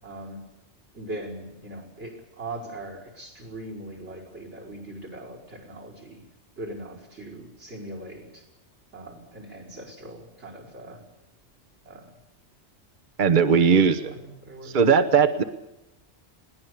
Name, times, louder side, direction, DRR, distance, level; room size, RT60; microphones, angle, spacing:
voice 1, 0.0-0.4 0.9-6.2 6.6-8.5 8.9-11.0 11.9-12.1 13.3-14.8, right 1 dB, 90° right, 3 dB, 5.7 m, -40 dB
voice 2, 13.2-14.1 14.6-15.4, right 6 dB, 45° right, 9 dB, 1.1 m, -19 dB
21.0 x 17.5 x 8.5 m, 0.93 s
omnidirectional pair, 1.2 m